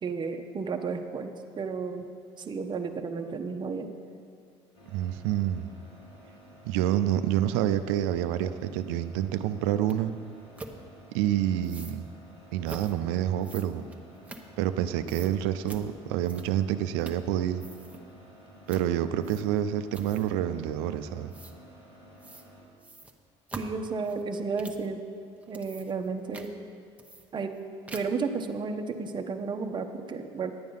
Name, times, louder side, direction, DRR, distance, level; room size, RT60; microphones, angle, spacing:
voice 1, 0.0-2.0 2.4-3.9 23.5-25.0 25.5-26.5 27.3-27.5 27.9-30.5, right 4 dB, 35° right, 5 dB, 0.9 m, -32 dB
sound 1, 4.7-22.6, equal, 85° left, 2.5 m, -52 dB
voice 2, 4.9-5.7 6.6-10.2 11.1-12.1 12.5-13.8 14.6-17.7 18.7-21.3, right 11 dB, 75° right, 11 dB, 0.6 m, -28 dB
sound 2, 9.9-10.0 10.6-10.8 11.6-12.0 12.7-13.0 13.4-14.8 15.1-15.3 15.7-15.9 16.2-16.7 17.0-17.3 17.6-18.0 18.7-18.9 19.2-19.6 19.9-20.4 21.3-21.6 22.2-22.5 22.8-24.9 25.4-26.1 26.3-26.5 27.0-27.6 27.9-28.3, right 2 dB, 10° right, 1.1 m, -45 dB
10.5 x 8.9 x 5.5 m, 2.2 s
hypercardioid pair, 65°, 14 cm